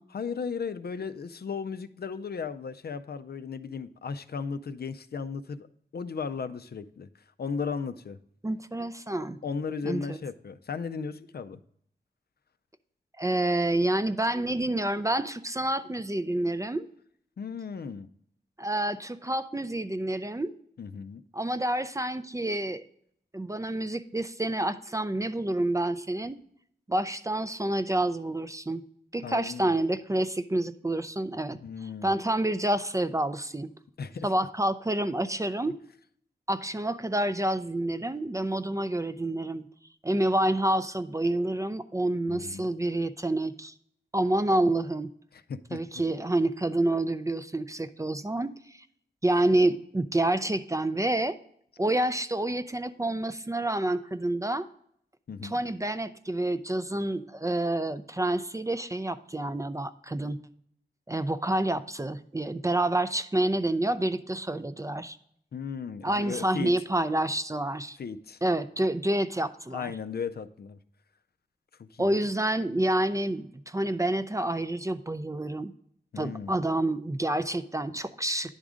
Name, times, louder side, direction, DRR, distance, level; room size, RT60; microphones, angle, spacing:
voice 1, 0.1-5.7 5.9-7.1 7.4-8.2 9.4-11.6 17.4-18.1 20.8-21.2 29.2-29.7 31.5-32.1 34.0-34.3 42.3-42.7 45.3-45.8 55.3-55.6 65.5-66.7 68.0-68.4 69.7-70.8 71.8-72.1 76.1-76.5, left 5 dB, 60° left, 0.4 m, -36 dB
voice 2, 8.4-9.4 9.8-10.2 13.2-16.9 18.6-20.5 21.3-22.8 23.3-26.4 26.9-28.8 29.1-31.6 32.0-33.7 34.2-35.8 36.5-39.6 40.0-43.7 44.1-45.1 45.7-48.8 49.2-51.4 51.8-54.7 55.4-60.4 61.1-65.2 66.0-68.0 68.4-69.9 72.0-75.7 76.2-78.6, right 1 dB, 15° right, 0.3 m, -28 dB
10.0 x 3.6 x 4.9 m
wide cardioid pair, 100°, 19 cm